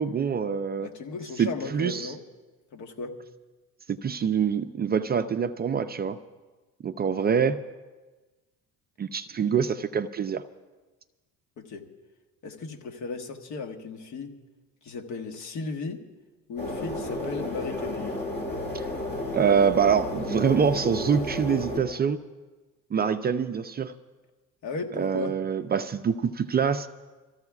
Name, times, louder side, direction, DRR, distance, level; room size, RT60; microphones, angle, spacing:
voice 1, 0.0-0.9 1.4-2.1 3.9-6.2 6.8-7.6 9.0-10.4 18.7-18.8 19.3-22.2 22.9-23.9 24.9-26.9, right 7 dB, 30° right, 9 dB, 0.4 m, -25 dB
voice 2, 0.8-2.2 2.7-3.2 11.6-11.9 12.4-14.4 14.8-16.0 16.5-18.1 24.6-25.4, left 4 dB, 55° left, 4 dB, 1.4 m, -36 dB
sound 1, 16.6-21.8, left 1 dB, 30° left, 5.0 m, -32 dB
28.0 x 14.0 x 2.4 m, 1.3 s
cardioid pair, 110°, 34 cm